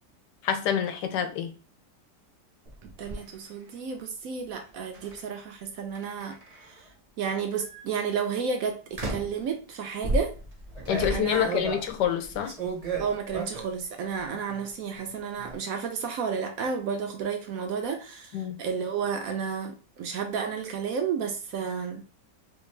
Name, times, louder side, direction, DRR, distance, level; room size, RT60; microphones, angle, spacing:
voice 1, 0.4-1.5 10.9-12.5 18.3-18.6, left 9 dB, 90° left, 1.2 m, -27 dB
sound 1, 2.6-3.2 4.9-5.2 5.9-6.8 7.5-7.8 8.9-9.4 10.0-13.8 14.1-14.7 15.0-15.6, right 2 dB, 35° right, 0.6 m, -34 dB
voice 2, 2.8-6.9 7.2-10.3 11.1-11.5 13.0-22.0, right 6 dB, 65° right, 0.9 m, -32 dB
3.3 x 2.4 x 3.2 m
omnidirectional pair, 1.8 m